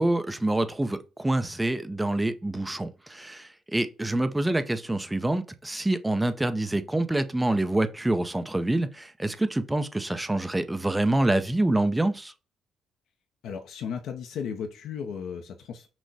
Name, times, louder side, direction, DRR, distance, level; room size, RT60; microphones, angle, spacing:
voice 1, 0.0-12.3, right 1 dB, 10° right, 0.5 m, -26 dB
voice 2, 13.4-15.9, left 7 dB, 80° left, 0.6 m, -35 dB
6.1 x 2.1 x 4.0 m
cardioid pair, 90°, 0 cm